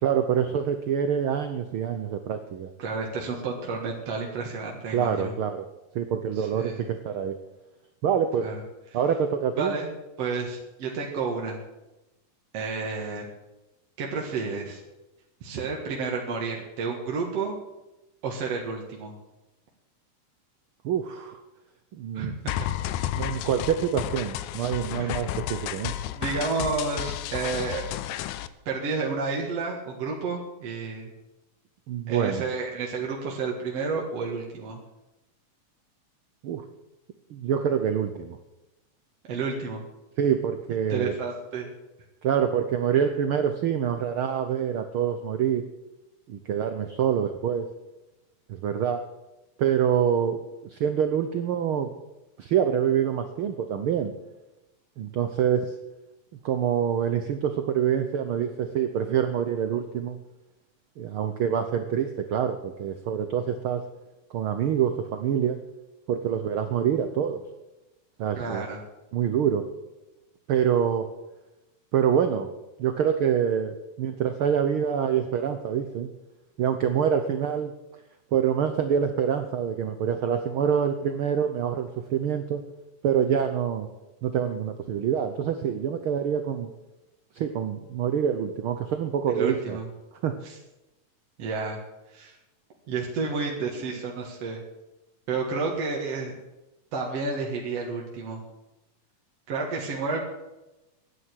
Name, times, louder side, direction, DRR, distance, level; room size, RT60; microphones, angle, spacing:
voice 1, 0.0-2.7 4.9-5.7 5.9-7.4 8.0-8.5 8.9-9.7 20.8-21.4 21.9-22.3 23.2-25.9 31.9-32.4 36.4-36.6 37.3-38.4 40.2-41.1 42.2-45.7 46.3-47.7 48.5-49.0 49.6-51.9 52.4-54.1 55.0-55.7 56.4-60.2 61.0-63.8 64.3-65.6 66.1-67.4 68.2-68.6 69.1-69.7 70.5-71.1 71.9-72.5 72.8-76.1 76.6-77.7 78.3-82.6 83.0-83.9 84.2-86.7 87.3-89.8 90.2-90.4, right 8 dB, 85° right, 8 dB, 1.1 m, -26 dB
voice 2, 2.8-5.3 6.4-6.8 8.4-8.6 9.6-9.9 10.2-11.6 12.5-13.3 14.0-14.8 15.4-17.6 18.2-19.1 22.1-22.5 25.0-25.3 26.1-27.8 28.7-31.1 32.1-34.8 39.3-39.8 40.9-41.7 68.4-68.8 89.3-89.9 90.4-90.5 91.4-91.8 92.1-92.4 92.9-94.6 95.3-96.4 96.9-98.4 99.5-100.2, right 4 dB, 55° right, -1 dB, 2.5 m, -30 dB
sound 1, 22.5-28.5, left 12 dB, 85° left, 2.2 m, -32 dB
11.5 x 9.7 x 9.1 m, 1.0 s
omnidirectional pair, 3.5 m